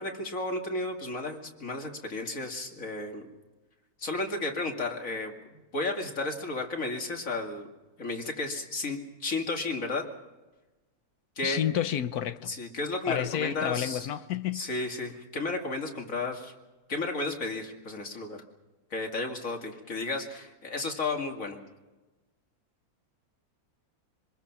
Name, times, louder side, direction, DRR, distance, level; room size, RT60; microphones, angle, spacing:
voice 1, 0.0-3.3 4.0-5.3 5.7-7.7 8.0-10.1 11.4-11.6 12.5-14.1 14.5-16.5 16.9-18.4 18.9-21.6, left 3 dB, 60° left, 2.7 m, -33 dB
voice 2, 11.4-12.5 13.1-14.7, left 10 dB, 75° left, 1.4 m, -30 dB
26.0 x 21.0 x 6.0 m
omnidirectional pair, 1.6 m